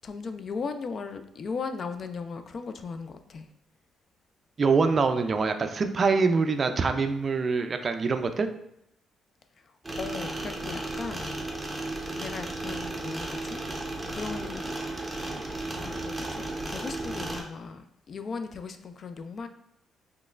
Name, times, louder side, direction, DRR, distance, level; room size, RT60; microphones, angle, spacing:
voice 1, 0.0-3.5 9.6-11.7 12.1-13.6 14.1-14.7 15.7-19.5, left 5 dB, 50° left, 8 dB, 0.3 m, -37 dB
voice 2, 4.6-8.5, right 4 dB, 40° right, 8 dB, 0.3 m, -24 dB
sound 1, 9.8-17.4, right 2 dB, 10° right, 0.7 m, -34 dB
4.1 x 3.1 x 2.4 m, 0.79 s
cardioid pair, 90°, 0 cm